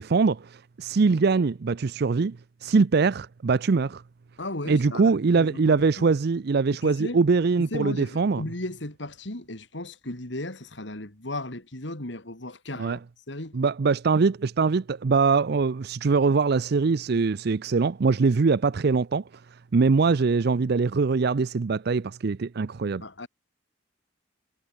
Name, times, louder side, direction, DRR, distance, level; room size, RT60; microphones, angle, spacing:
voice 1, 0.0-4.0 4.7-8.4 12.8-13.0 13.5-19.2 19.7-23.0, right 4 dB, 55° right, 0.5 m, -23 dB
voice 2, 4.4-6.1 6.8-7.2 7.6-13.0 13.3-13.6 23.0-23.3, left 1 dB, 65° left, 3.1 m, -35 dB
head